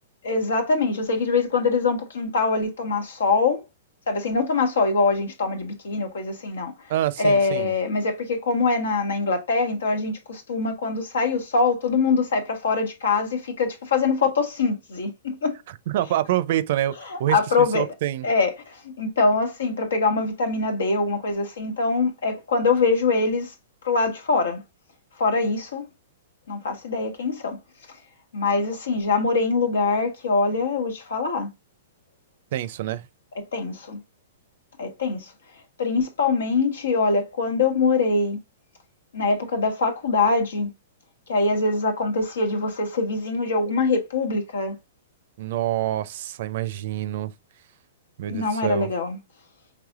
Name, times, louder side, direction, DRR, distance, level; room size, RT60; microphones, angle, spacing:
voice 1, 0.2-3.6 4.1-6.7 7.2-15.6 17.1-17.9 18.2-23.5 23.8-24.6 25.2-25.8 26.5-27.6 28.3-31.5 33.3-34.0 34.8-35.3 35.8-38.4 39.1-40.7 41.3-44.7 48.3-49.2, left 4 dB, 90° left, 1.4 m, -23 dB
voice 2, 6.9-7.7 15.9-18.2 32.5-33.0 45.4-47.3 48.2-48.9, right 13 dB, 50° right, 0.4 m, -26 dB
4.9 x 3.3 x 2.4 m
hypercardioid pair, 155°, 0 cm